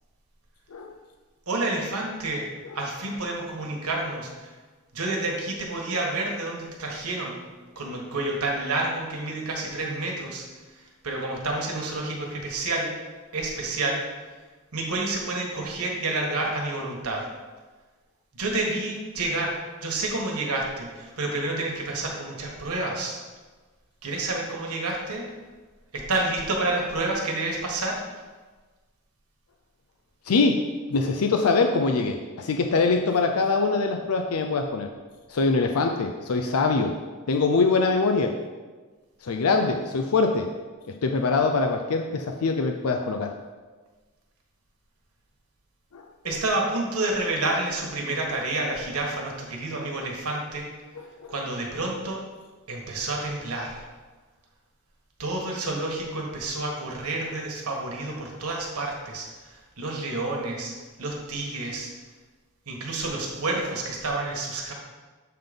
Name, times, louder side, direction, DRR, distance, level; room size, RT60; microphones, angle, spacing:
voice 1, 1.5-2.4 2.7-4.5 4.9-7.4 7.7-10.4 11.0-12.9 13.3-14.0 14.7-17.2 18.3-19.5 19.8-23.2 24.0-25.2 25.9-28.0 46.2-50.7 51.3-52.2 52.7-53.8 55.2-59.3 59.8-60.7 61.0-61.9 62.7-64.7, right 2 dB, 80° right, -1 dB, 1.5 m, -29 dB
voice 2, 30.3-30.6 30.9-34.9 35.3-37.0 37.3-38.3 39.2-40.5 41.0-43.3 45.9-46.3 51.0-51.3, left 4 dB, 75° left, 4 dB, 0.5 m, -23 dB
7.7 x 3.8 x 5.2 m, 1.3 s
head